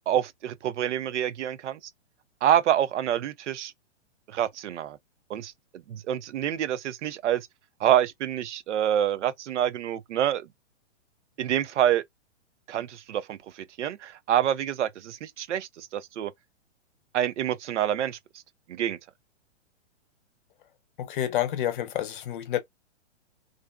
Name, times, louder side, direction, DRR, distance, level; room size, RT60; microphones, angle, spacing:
voice 1, 0.1-1.8 2.4-3.7 4.3-5.0 5.3-7.5 7.8-10.5 11.4-12.0 12.7-16.3 17.1-18.2 18.7-19.0, right 11 dB, 80° right, 0.5 m, -27 dB
voice 2, 21.0-22.6, left 12 dB, 45° left, 0.6 m, -29 dB
2.4 x 2.4 x 2.2 m
hypercardioid pair, 145°, 35 cm